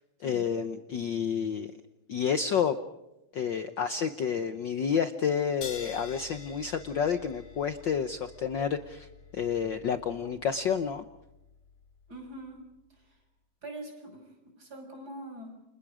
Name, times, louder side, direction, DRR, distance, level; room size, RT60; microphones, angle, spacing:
voice 1, 0.2-1.7 2.1-2.8 3.3-9.1 9.3-11.0, left 7 dB, 75° left, 10 dB, 1.0 m, -29 dB
sound 1, 5.6-12.6, left 5 dB, 90° left, 4.6 m, -48 dB
voice 2, 12.1-12.6 13.6-14.3 14.6-15.5, right 1 dB, 30° right, 5 dB, 6.5 m, -43 dB
30.0 x 28.0 x 5.0 m, 0.93 s
omnidirectional pair, 3.4 m